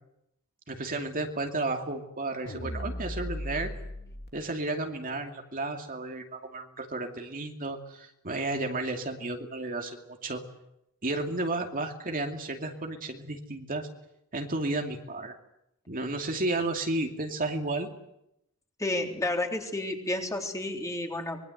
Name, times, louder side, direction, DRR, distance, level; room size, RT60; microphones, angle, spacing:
voice 1, 0.7-3.7 4.3-10.4 11.0-13.9 14.3-15.4 15.9-17.9, right 2 dB, 40° right, 4 dB, 2.6 m, -32 dB
sound 1, 2.5-4.3, left 1 dB, 45° left, 2.6 m, -36 dB
voice 2, 18.8-21.4, left 2 dB, 15° left, 3 dB, 3.7 m, -31 dB
25.5 x 22.5 x 8.0 m, 0.80 s
head